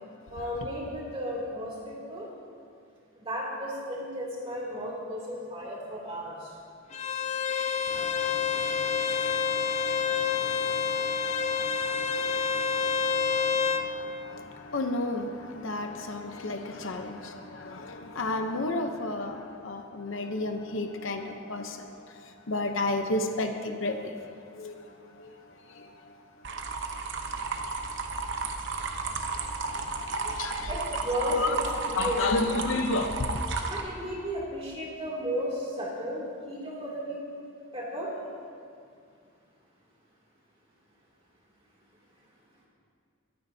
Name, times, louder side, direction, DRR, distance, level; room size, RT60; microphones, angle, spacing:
voice 1, 0.3-2.3 3.2-6.5 30.7-32.6 33.7-36.2 36.5-37.2 37.7-38.1, equal, 25° right, -5 dB, 2.7 m, -34 dB
Bowed string instrument, 6.9-13.9, left 6 dB, 35° left, 0.4 m, -28 dB
voice 2, 7.9-13.9 14.3-14.4 14.7-17.3 17.6-19.4 19.6-21.2 21.5-21.8 22.5-24.0 24.6-24.7 30.4-30.7 31.3-31.5 32.0-33.4, left 2 dB, 65° left, 5 dB, 0.8 m, -32 dB
sound 1, 26.4-33.8, right 4 dB, 60° right, 0.9 m, -33 dB
22.5 x 9.6 x 2.8 m, 2.3 s
head